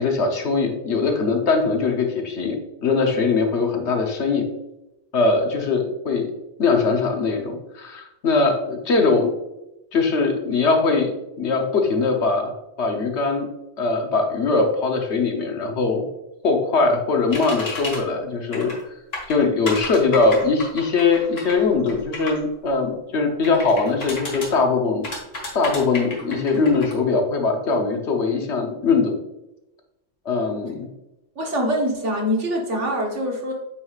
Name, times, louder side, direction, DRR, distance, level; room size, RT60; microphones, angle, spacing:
voice 1, 0.0-2.6 2.8-4.5 5.1-6.3 6.6-9.3 9.9-11.1 11.4-12.5 12.8-13.5 13.8-16.1 16.4-18.7 19.3-25.1 25.5-29.2 30.3-30.9, left 4 dB, 65° left, 3 dB, 1.1 m, -21 dB
sound 1, 17.3-18.0 18.5-18.8 19.1-22.4 23.4-24.5 25.0-26.9, left 2 dB, 85° left, 2.1 m, -32 dB
voice 2, 31.3-33.5, equal, 70° right, 0 dB, 1.6 m, -24 dB
8.5 x 4.7 x 2.4 m, 0.92 s
omnidirectional pair, 1.3 m